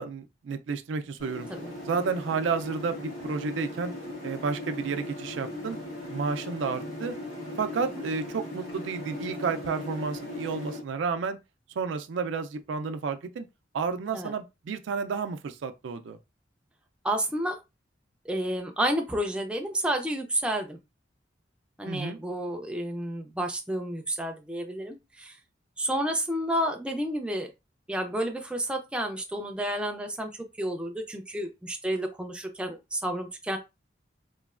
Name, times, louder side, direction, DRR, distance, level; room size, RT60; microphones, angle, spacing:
voice 1, 0.0-1.5 1.9-3.9 4.2-5.8 6.1-7.1 7.6-11.4 11.8-13.5 13.7-16.2 21.9-22.2, right 5 dB, 85° right, 0.4 m, -31 dB
sound 1, 1.2-10.8, left 1 dB, 60° left, 1.5 m, -38 dB
voice 2, 17.0-17.6 18.3-20.8 21.8-25.4 25.8-27.5 27.9-30.3 30.6-33.6, right 1 dB, 5° right, 0.3 m, -30 dB
3.1 x 2.1 x 2.4 m
head